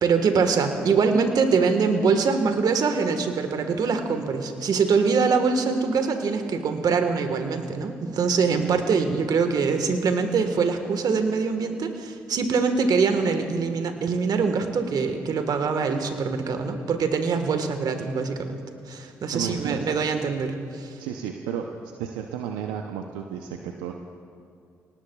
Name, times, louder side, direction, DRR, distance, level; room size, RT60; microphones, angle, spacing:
voice 1, 0.0-18.6 18.9-21.0, right 5 dB, 60° right, 7 dB, 1.4 m, -23 dB
voice 2, 19.3-20.0 21.0-21.7 22.0-23.9, right 8 dB, 85° right, 4 dB, 0.6 m, -32 dB
25.0 x 18.0 x 2.3 m, 2.4 s
hypercardioid pair, 50°, 8 cm